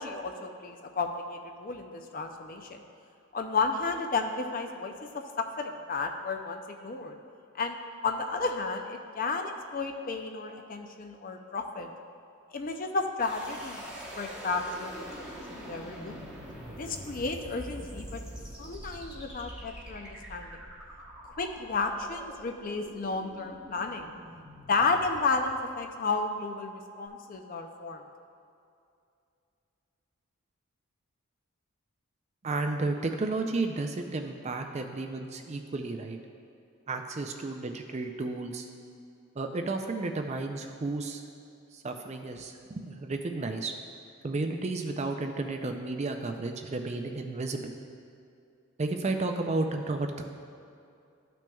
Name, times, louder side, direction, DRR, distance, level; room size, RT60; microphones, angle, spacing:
voice 1, 0.0-2.8 3.3-7.1 7.6-7.8 8.0-11.9 12.5-13.9 14.2-16.3 16.8-18.2 18.6-20.6 21.4-24.1 24.7-28.0, left 4 dB, 40° left, 5 dB, 0.4 m, -32 dB
sound 1, 13.2-26.1, equal, 5° right, 0.9 m, -45 dB
voice 2, 32.4-36.2 36.9-38.7 39.4-41.2 41.7-43.7 44.2-47.8 48.8-50.3, right 3 dB, 30° right, 5 dB, 0.4 m, -32 dB
13.0 x 6.0 x 2.3 m, 2.5 s
head